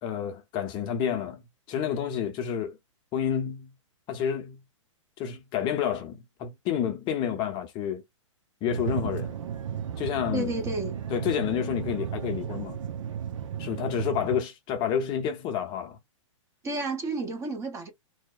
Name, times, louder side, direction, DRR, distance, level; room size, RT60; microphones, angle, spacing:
voice 1, 0.0-1.4 1.7-2.8 3.1-3.7 4.1-4.6 5.2-8.0 8.6-9.3 10.0-10.5 11.1-12.8 13.6-16.0, left 8 dB, 30° left, 0.6 m, -29 dB
sound 1, 8.7-14.4, right 8 dB, 75° right, 0.6 m, -34 dB
voice 2, 10.3-11.0 16.6-17.9, right 2 dB, 20° right, 0.7 m, -31 dB
2.7 x 2.0 x 2.3 m
hypercardioid pair, 135°, 17 cm